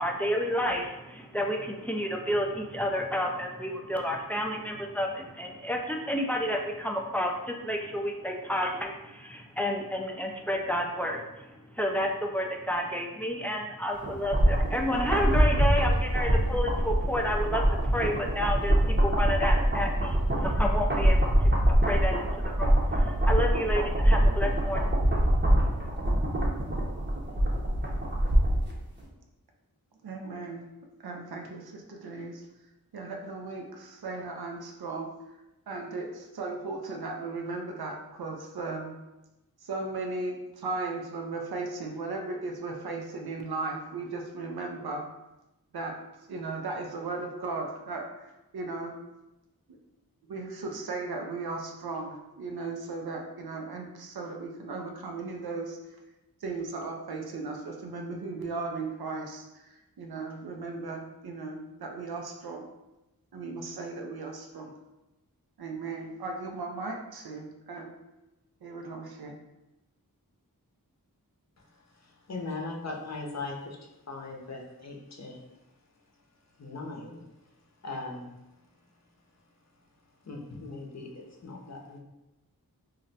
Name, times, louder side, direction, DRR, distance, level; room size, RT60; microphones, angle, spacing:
voice 1, 0.0-25.8, equal, 5° left, 2 dB, 0.4 m, -31 dB
sound 1, 14.0-28.7 29.0-29.1, right 1 dB, 30° right, 0.7 m, -24 dB
voice 2, 30.0-30.7 31.0-32.5 32.9-35.1 35.7-39.0 39.6-45.0 45.7-46.0 46.3-49.0 49.7-49.8 50.3-55.8 56.4-62.7 63.3-64.7 65.6-67.9 68.6-69.4, right 3 dB, 85° right, 2 dB, 0.6 m, -36 dB
voice 3, 72.3-73.8 74.1-75.4 76.6-77.2 77.8-78.3 80.3-81.1 81.4-82.0, left 3 dB, 45° left, -1 dB, 0.7 m, -38 dB
2.5 x 2.1 x 3.9 m, 0.98 s
wide cardioid pair, 45°, 37 cm